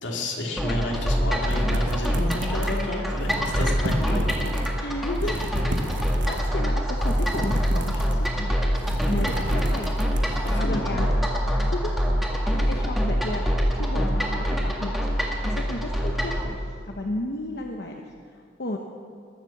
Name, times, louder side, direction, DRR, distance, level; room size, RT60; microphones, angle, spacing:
voice 1, 0.0-4.5 5.2-5.5 10.2-11.1, left 1 dB, 85° left, 0 dB, 2.4 m, -31 dB
sound 1, 0.6-16.4, equal, ahead, 1.7 m, -25 dB
sound 2, 1.5-2.9 3.2-4.7 5.1-6.5 7.0-8.4 8.7-10.5, right 1 dB, 80° right, 1.2 m, -32 dB
voice 2, 4.8-5.4 5.8-8.6 8.9-9.9 10.3-11.1 11.7-11.9 12.4-13.5 13.7-18.8, left 1 dB, 60° left, 1 dB, 0.9 m, -34 dB
20.5 x 7.4 x 7.2 m, 2.3 s
head